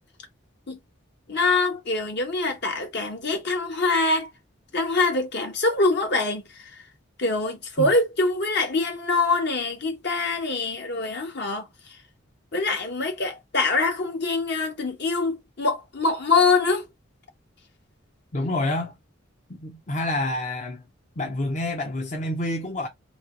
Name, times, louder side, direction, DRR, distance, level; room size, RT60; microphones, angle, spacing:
voice 1, 1.3-4.3 4.7-6.4 7.2-11.6 12.5-16.8, left 3 dB, 60° left, 1.3 m, -24 dB
voice 2, 18.3-18.9 19.5-20.8 21.2-22.9, left 1 dB, 40° left, 0.7 m, -28 dB
3.1 x 2.9 x 3.8 m
head